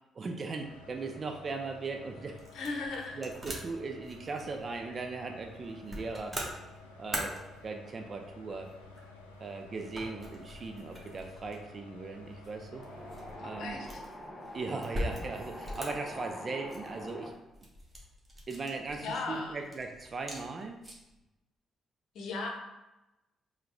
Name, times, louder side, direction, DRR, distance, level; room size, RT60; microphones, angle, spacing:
voice 1, 0.1-2.4 3.1-6.4 7.0-8.7 9.4-12.8 13.4-13.8 14.5-17.3 18.5-20.8, right 3 dB, 40° right, 4 dB, 0.5 m, -38 dB
sound 1, 0.6-13.5, left 3 dB, 85° left, 0.4 m, -52 dB
sound 2, 1.8-21.2, equal, 20° right, 1.2 m, -44 dB
voice 2, 2.5-3.2 13.4-13.9 19.0-19.6 22.1-22.5, left 3 dB, 60° left, 1 dB, 0.8 m, -36 dB
Wind, 12.7-17.3, left 1 dB, 25° left, 1.5 m, -44 dB
4.6 x 2.3 x 3.8 m, 0.99 s
figure-of-eight pair, 40°, 0 cm